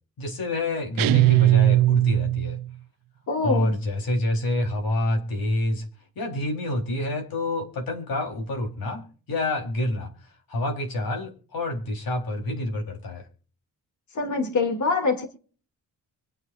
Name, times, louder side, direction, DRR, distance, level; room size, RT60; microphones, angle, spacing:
voice 1, 0.2-2.6 3.4-5.8 6.2-10.1 10.5-13.3, left 1 dB, 85° left, 2 dB, 3.9 m, -27 dB
sound 1, 1.0-2.7, right 14 dB, 75° right, 0.5 m, -19 dB
voice 2, 3.3-3.7 14.1-15.2, left 3 dB, 55° left, 3 dB, 2.7 m, -24 dB
25.0 x 9.3 x 2.6 m, 0.41 s
wide cardioid pair, 125°, 35 cm